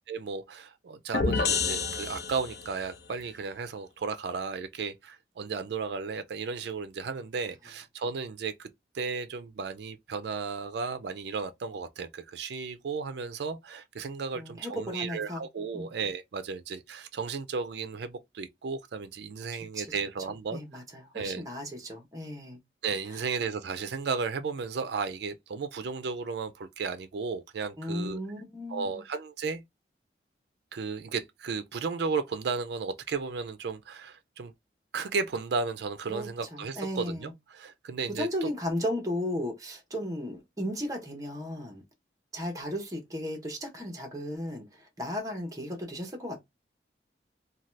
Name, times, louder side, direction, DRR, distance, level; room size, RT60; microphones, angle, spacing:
voice 1, 0.1-8.7 8.9-20.6 21.1-21.4 22.8-28.2 28.7-29.6 30.7-34.5 34.9-38.5, right 5 dB, 70° right, 0.4 m, -34 dB
sound 1, 1.1-2.8, left 4 dB, 65° left, 0.6 m, -29 dB
voice 2, 14.3-15.4 15.7-15.9 19.7-19.9 20.5-22.6 23.1-23.3 27.8-29.0 36.1-37.3 38.1-41.8 42.3-46.4, equal, 20° right, 0.8 m, -35 dB
2.7 x 2.2 x 3.1 m
head